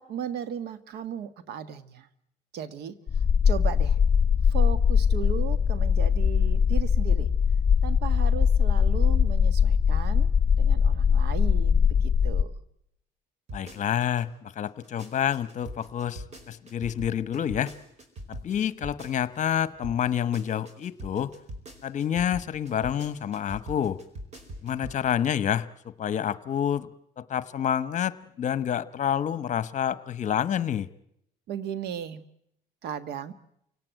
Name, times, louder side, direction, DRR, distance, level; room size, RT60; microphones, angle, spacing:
voice 1, 0.0-2.1 2.5-3.0 3.4-4.0 4.5-7.3 7.8-10.3 10.6-12.6 31.5-32.2 32.8-33.3, right 8 dB, 75° right, 14 dB, 1.5 m, -36 dB
sound 1, 3.1-12.4, left 7 dB, 30° left, 1.8 m, -21 dB
voice 2, 13.5-17.7 18.3-21.3 21.8-24.0 24.6-26.9 27.2-30.9, left 9 dB, 45° left, 16 dB, 1.2 m, -28 dB
sound 2, 13.5-14.2 14.7-19.6 19.8-25.0 25.3-25.4, right 1 dB, 40° right, 4.9 m, -42 dB
28.5 x 17.5 x 9.2 m, 0.77 s
cardioid pair, 110°, 17 cm